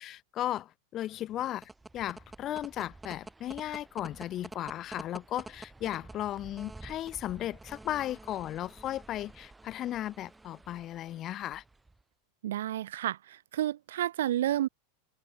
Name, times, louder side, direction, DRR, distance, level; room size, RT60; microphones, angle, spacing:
voice 1, 0.0-11.6, left 13 dB, 25° left, 6.5 m, -36 dB
sound 1, 1.2-12.0, right 2 dB, 5° right, 3.2 m, -49 dB
voice 2, 12.4-14.7, right 12 dB, 85° right, 3.9 m, -30 dB
supercardioid pair, 170°, 0 cm